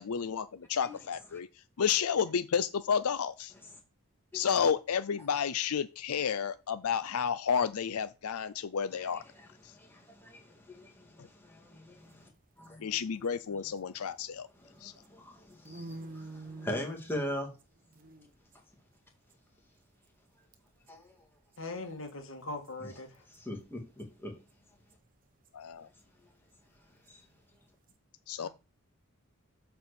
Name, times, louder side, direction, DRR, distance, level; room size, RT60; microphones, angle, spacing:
voice 1, 0.0-1.5 1.8-3.5 4.3-9.2 9.6-9.7 11.2-11.3 12.8-14.5 14.8-14.9 25.5-25.9 28.3-28.5, left 7 dB, 85° left, 0.5 m, -31 dB
voice 2, 9.7-12.3 12.6-13.0 14.6-17.5 20.9-21.2 23.3-24.3 27.1-27.2, left 1 dB, 10° left, 2.1 m, -41 dB
sound 1, 12.0-14.5 14.8-20.3 20.5-20.9 21.2-21.3 21.5-24.1 24.3-27.9, right 2 dB, 40° right, 1.1 m, -49 dB
voice 3, 21.6-23.2 28.4-28.5, left 2 dB, 60° left, 2.3 m, -41 dB
9.2 x 4.5 x 6.9 m
head